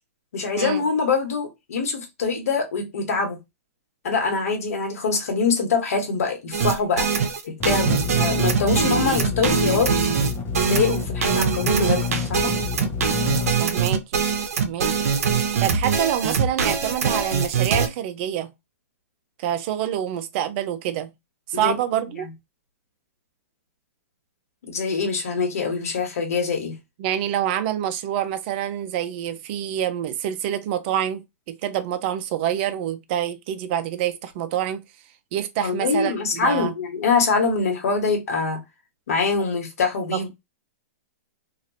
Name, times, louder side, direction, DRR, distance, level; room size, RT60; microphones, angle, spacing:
voice 1, 0.3-3.4 4.0-7.1 7.4-9.9 10.6-12.5 21.5-21.7 22.1-22.3 24.6-26.8 35.6-38.6 39.1-40.3, left 4 dB, 75° left, 1.4 m, -24 dB
sound 1, 6.5-17.9, right 6 dB, 75° right, 0.7 m, -23 dB
sound 2, 7.6-13.5, left 5 dB, 25° left, 0.9 m, -29 dB
voice 2, 13.6-14.3 14.6-15.1 15.6-18.5 19.4-21.1 21.5-22.3 27.0-34.8 35.3-36.7 40.1-40.3, right 10 dB, 45° right, 0.5 m, -27 dB
2.9 x 2.5 x 2.6 m
hypercardioid pair, 140°, 8 cm